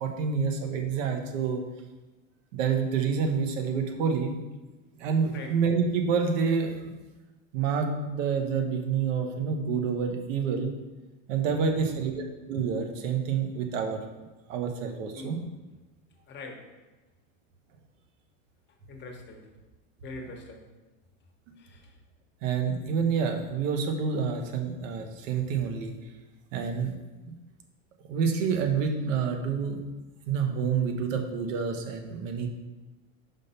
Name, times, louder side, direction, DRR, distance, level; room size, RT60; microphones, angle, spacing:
voice 1, 0.0-1.6 2.5-4.4 5.0-6.9 7.5-10.7 11.3-14.0 14.5-15.4 21.5-21.6 22.4-25.9 26.5-26.9 28.1-29.8 30.3-32.5, right 6 dB, 80° right, 4 dB, 1.1 m, -28 dB
voice 2, 11.6-12.2 15.1-15.4 16.3-16.7 18.9-19.4 20.0-20.7 21.6-21.9, left 2 dB, 30° left, 2 dB, 1.0 m, -43 dB
5.4 x 3.7 x 5.5 m, 1.2 s
supercardioid pair, 130°, 38 cm